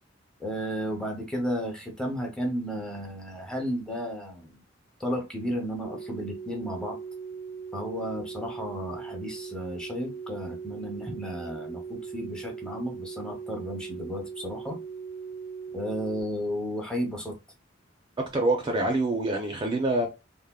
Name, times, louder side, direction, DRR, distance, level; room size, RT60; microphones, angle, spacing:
voice 1, 0.4-4.6 5.0-7.0 7.7-14.8 15.7-17.3, equal, 5° left, 0.7 m, -33 dB
sound 1, 5.8-16.2, right 6 dB, 80° left, 1.1 m, -39 dB
voice 2, 18.2-20.1, right 2 dB, 25° right, 0.4 m, -26 dB
3.4 x 2.1 x 2.2 m
head